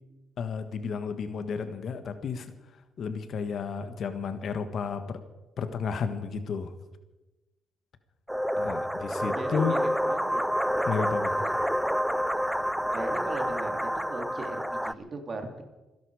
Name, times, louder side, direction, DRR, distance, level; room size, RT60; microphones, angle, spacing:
voice 1, 0.4-2.5 3.0-5.2 5.6-6.7 8.6-9.8 10.9-11.5, left 6 dB, 60° left, 9 dB, 1.5 m, -32 dB
sound 1, 8.3-14.9, equal, ahead, 0.5 m, -28 dB
voice 2, 9.2-10.6 11.3-11.7 12.9-15.6, right 2 dB, 40° right, 5 dB, 3.1 m, -38 dB
25.0 x 11.5 x 5.0 m, 1.1 s
cardioid pair, 90°, 0 cm